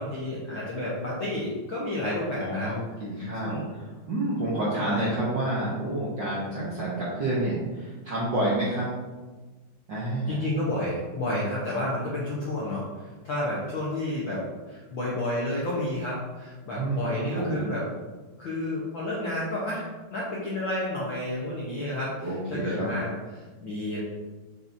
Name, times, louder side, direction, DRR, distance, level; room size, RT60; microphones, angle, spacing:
voice 1, 0.0-2.7 3.4-3.7 4.8-5.1 10.3-17.8 18.4-24.0, left 1 dB, 65° left, -7 dB, 1.2 m, -31 dB
voice 2, 2.4-8.9 9.9-10.5 16.8-17.7 22.2-22.9, right 1 dB, 60° right, -7 dB, 1.2 m, -29 dB
7.4 x 6.2 x 2.7 m, 1.3 s
omnidirectional pair, 3.8 m